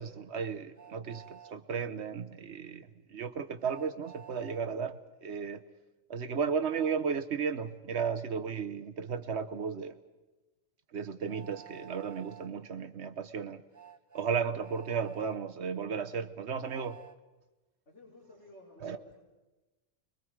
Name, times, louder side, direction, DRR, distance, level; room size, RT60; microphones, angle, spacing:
voice 1, 0.0-5.6 6.1-10.0 10.9-13.6 14.1-17.0 18.8-19.0, right 6 dB, 65° right, 9 dB, 1.2 m, -34 dB
Train, 0.8-1.6 3.6-4.6 6.7-7.0 9.1-9.2 11.3-12.5 13.7-15.4 16.6-17.2, right 9 dB, 20° right, 0.6 m, -51 dB
voice 2, 17.9-19.2, left 1 dB, 65° left, -5 dB, 4.5 m, -54 dB
30.0 x 22.5 x 4.8 m, 1.1 s
omnidirectional pair, 1.3 m